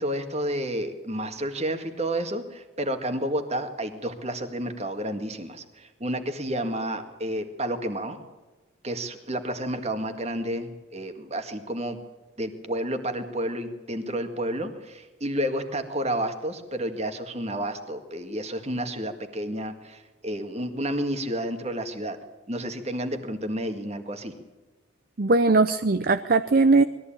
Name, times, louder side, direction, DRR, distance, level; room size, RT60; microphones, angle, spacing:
voice 1, 0.0-8.2 8.8-12.0 12.4-22.2 22.5-24.3, right 1 dB, 30° right, 7 dB, 1.9 m, -30 dB
voice 2, 25.2-26.8, right 3 dB, 45° right, 10 dB, 0.6 m, -19 dB
21.0 x 14.5 x 8.8 m, 1.2 s
head